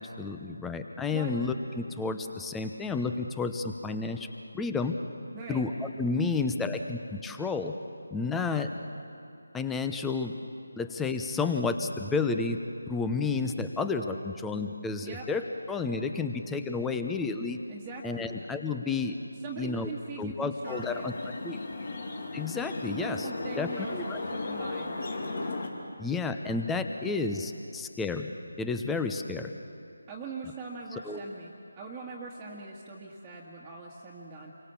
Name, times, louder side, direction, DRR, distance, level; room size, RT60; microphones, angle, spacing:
voice 1, 0.0-4.3 4.5-5.0 5.5-7.7 8.1-8.7 9.5-10.3 10.8-12.6 12.9-17.6 18.0-19.1 19.6-19.9 20.2-21.1 21.4-21.6 22.3-23.3 23.6-24.2 26.0-28.3 28.6-29.5 31.0-31.2, left 4 dB, 5° left, 6 dB, 0.9 m, -31 dB
voice 2, 5.3-5.7 15.0-15.3 17.7-18.4 19.4-21.1 23.0-25.2 30.1-34.5, right 4 dB, 10° right, -6 dB, 1.9 m, -42 dB
sound 1, 20.6-25.7, left 2 dB, 55° left, 3.3 m, -36 dB
29.0 x 24.0 x 7.1 m, 2.7 s
figure-of-eight pair, 160°, 0 cm